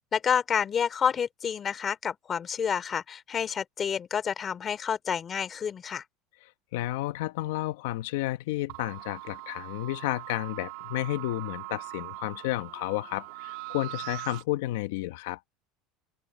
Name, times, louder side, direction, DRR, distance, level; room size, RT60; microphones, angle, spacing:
voice 1, 0.0-6.0, left 7 dB, 25° left, 2.9 m, -29 dB
voice 2, 6.7-15.4, left 17 dB, 85° left, 1.2 m, -31 dB
sound 1, 8.7-14.4, right 21 dB, 70° right, 1.6 m, -41 dB
open air
cardioid pair, 145°, 0 cm